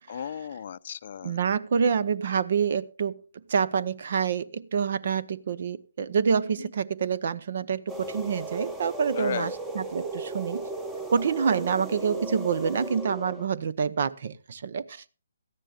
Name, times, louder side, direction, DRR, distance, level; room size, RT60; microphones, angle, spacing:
voice 1, 0.1-1.4 9.1-9.6, left 8 dB, 50° left, 0.5 m, -34 dB
voice 2, 1.2-3.2 3.5-10.7 11.1-15.0, right 6 dB, 55° right, 0.8 m, -27 dB
sound 1, 7.9-13.5, right 2 dB, 10° right, 1.2 m, -36 dB
17.5 x 13.5 x 2.4 m
figure-of-eight pair, 140°, 0 cm